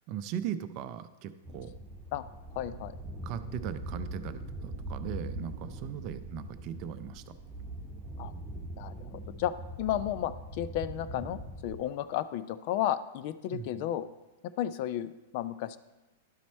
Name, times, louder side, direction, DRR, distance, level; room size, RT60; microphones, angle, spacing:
voice 1, 0.1-1.7 3.2-7.3 13.5-13.9, right 9 dB, 45° right, 11 dB, 0.5 m, -39 dB
sound 1, 1.5-11.8, right 1 dB, 20° right, 1.1 m, -42 dB
voice 2, 2.6-3.0 8.2-8.3 8.8-9.5 9.8-14.1 14.6-15.8, left 12 dB, 55° left, 13 dB, 0.4 m, -33 dB
11.5 x 4.2 x 4.3 m, 1.0 s
hypercardioid pair, 110°, 0 cm